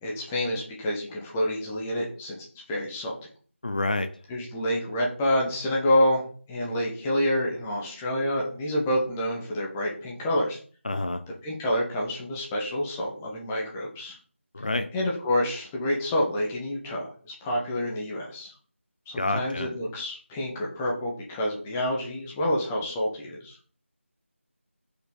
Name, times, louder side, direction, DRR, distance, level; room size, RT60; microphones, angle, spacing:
voice 1, 0.0-3.1 4.3-6.2 6.5-10.6 11.4-14.2 14.9-18.5 19.1-23.6, left 1 dB, 5° left, -3 dB, 0.7 m, -28 dB
voice 2, 3.6-4.1 10.8-11.2 14.5-14.9 19.2-19.7, left 2 dB, 40° left, 9 dB, 0.6 m, -28 dB
4.8 x 4.4 x 5.2 m, 0.43 s
figure-of-eight pair, 170°, 7 cm